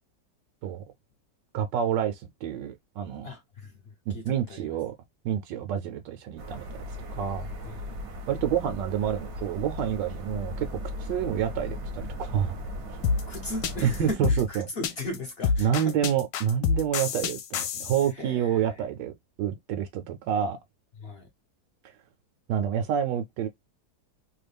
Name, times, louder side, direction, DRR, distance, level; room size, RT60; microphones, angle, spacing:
voice 1, 1.5-3.3 4.1-4.9 5.2-6.6 7.1-7.5 8.3-12.6 13.8-14.7 15.6-19.1 19.4-20.6 21.8-21.9 22.5-23.5, right 9 dB, 80° right, 1.3 m, -28 dB
voice 2, 3.2-4.7 7.6-8.0 13.3-16.1 18.1-18.8 21.0-21.3, left 2 dB, 55° left, 0.7 m, -38 dB
sound 1, 6.4-14.1, left 1 dB, 60° right, 0.8 m, -37 dB
sound 2, 13.0-18.1, left 5 dB, 75° left, 1.2 m, -27 dB
3.1 x 2.3 x 3.3 m
omnidirectional pair, 1.9 m